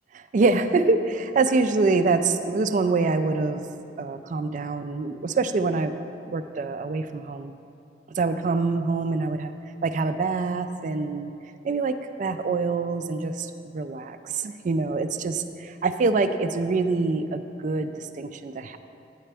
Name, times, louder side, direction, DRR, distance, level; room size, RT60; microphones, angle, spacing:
voice 1, 0.3-3.6 4.0-6.0 6.3-7.5 8.1-9.5 9.8-11.3 11.6-18.8, right 3 dB, 45° right, 10 dB, 0.3 m, -25 dB
8.7 x 8.3 x 3.4 m, 2.7 s
head